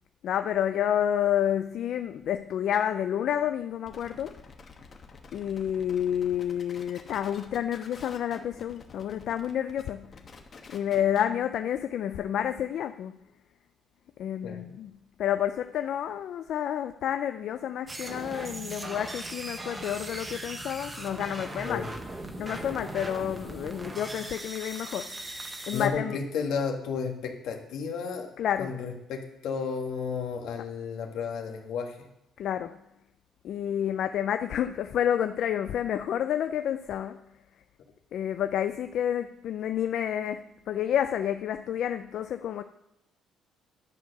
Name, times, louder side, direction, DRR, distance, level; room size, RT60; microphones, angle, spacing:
voice 1, 0.2-4.3 5.3-10.1 10.7-13.1 14.2-14.9 15.2-21.8 22.4-25.1 25.7-26.2 28.4-28.7 32.4-32.8 33.4-37.2 38.1-42.6, left 10 dB, 60° left, 0.3 m, -29 dB
sound 1, 3.9-11.4, left 4 dB, 35° left, 1.1 m, -49 dB
sound 2, 17.9-25.9, right 2 dB, 20° right, 0.9 m, -39 dB
voice 2, 25.7-28.3 28.6-32.0, left 5 dB, 80° left, 1.5 m, -32 dB
10.5 x 4.6 x 6.5 m
cardioid pair, 135°, 0 cm